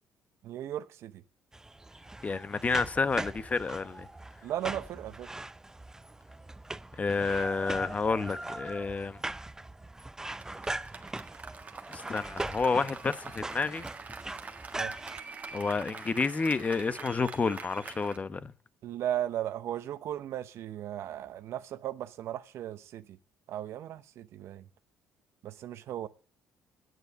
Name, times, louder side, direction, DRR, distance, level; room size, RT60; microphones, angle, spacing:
voice 1, 0.4-1.2 4.4-5.3 14.8-14.9 18.8-23.2 23.5-24.7 25.4-26.1, right 11 dB, 65° right, 0.8 m, -36 dB
sound 1, 1.5-15.2, right 2 dB, 10° right, 0.5 m, -40 dB
voice 2, 2.2-4.1 7.0-9.2 11.9-13.9 15.5-18.5, left 4 dB, 30° left, 0.9 m, -30 dB
Applause, 10.3-18.2, right 4 dB, 30° right, 1.7 m, -45 dB
9.2 x 8.1 x 8.0 m
supercardioid pair, 70°, 5 cm